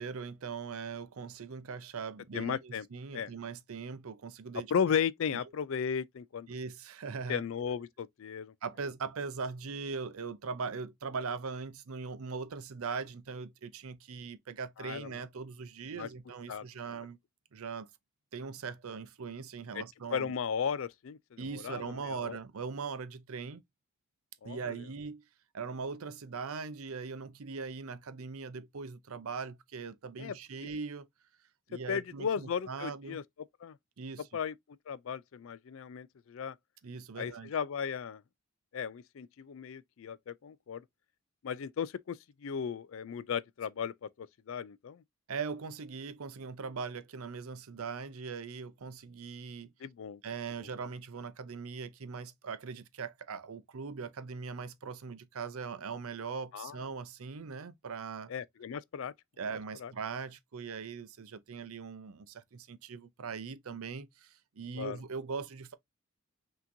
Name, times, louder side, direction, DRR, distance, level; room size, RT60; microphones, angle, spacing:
voice 1, 0.0-4.7 6.5-7.4 8.6-17.2 17.5-17.9 18.3-20.3 21.4-23.6 24.4-25.2 25.5-31.1 31.7-33.2 34.0-34.3 36.8-37.5 45.3-49.7 50.2-58.3 59.4-65.7, right 5 dB, 75° right, 0.6 m, -40 dB
voice 2, 2.3-2.9 3.1-3.3 4.7-6.5 7.3-8.5 14.8-15.1 15.9-16.1 16.5-16.6 19.7-19.8 20.1-22.4 24.4-24.7 30.2-30.4 31.9-33.2 33.6-33.8 34.3-34.5 34.9-36.6 37.2-38.2 38.7-40.8 41.4-45.0 49.8-50.2 56.5-56.8 58.3-59.1 59.8-59.9 64.8-65.0, left 7 dB, 65° left, 0.4 m, -35 dB
5.8 x 2.9 x 2.6 m
head